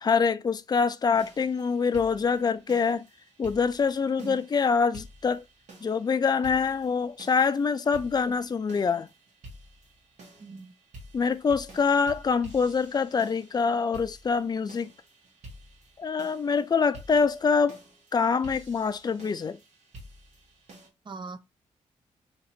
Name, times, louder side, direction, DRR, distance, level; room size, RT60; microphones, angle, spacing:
voice 1, 0.0-3.0 3.4-5.4 5.8-9.1 11.1-14.9 16.0-17.8 18.1-19.6, left 5 dB, 30° left, 0.4 m, -25 dB
sound 1, 1.2-20.9, right 1 dB, 65° right, 1.4 m, -50 dB
voice 2, 10.4-10.7 21.1-21.4, right 4 dB, 35° right, 0.6 m, -40 dB
2.9 x 2.6 x 4.3 m
cardioid pair, 75°, 13 cm